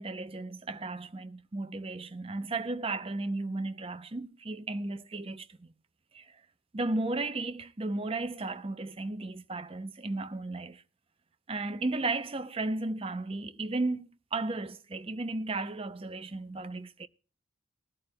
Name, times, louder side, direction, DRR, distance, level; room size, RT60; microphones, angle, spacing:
voice 1, 0.0-5.7 6.1-6.4 6.7-10.8 11.5-17.1, right 2 dB, 25° right, 0.5 m, -34 dB
20.0 x 13.5 x 2.2 m
head